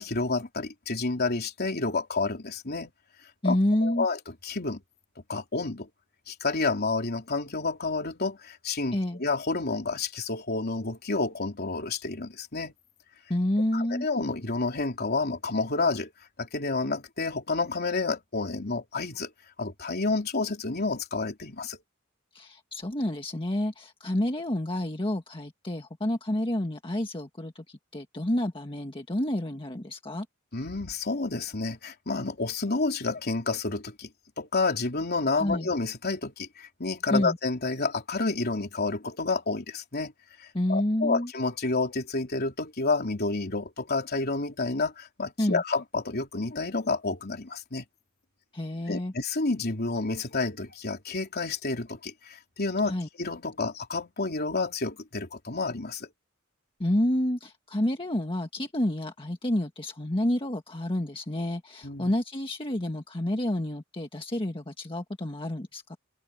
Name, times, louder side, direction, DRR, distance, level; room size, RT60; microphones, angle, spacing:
voice 1, 0.0-2.9 3.4-4.2 4.4-4.8 5.3-5.9 6.3-12.7 13.7-16.1 16.4-19.3 19.6-21.8 30.5-34.1 34.4-40.1 40.4-47.8 48.9-56.1 61.8-62.1, left 3 dB, 50° left, 3.2 m, -29 dB
voice 2, 3.4-4.1 8.9-9.2 13.3-14.1 22.3-30.2 35.4-35.7 37.1-37.4 40.5-41.3 45.4-45.6 48.5-49.1 52.9-53.1 56.8-66.0, left 1 dB, 25° left, 1.6 m, -29 dB
head